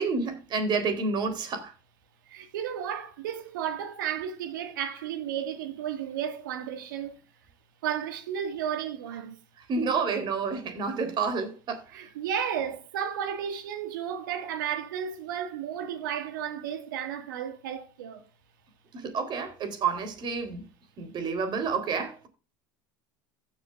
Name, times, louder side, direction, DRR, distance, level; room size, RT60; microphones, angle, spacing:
voice 1, 0.0-1.7 9.7-11.8 18.9-20.6 21.0-22.3, right 4 dB, 45° right, 3.8 m, -29 dB
voice 2, 2.3-7.2 7.8-9.4 11.9-18.2, right 9 dB, 80° right, 2.0 m, -33 dB
15.5 x 7.4 x 2.5 m
hypercardioid pair, 80°, 11 cm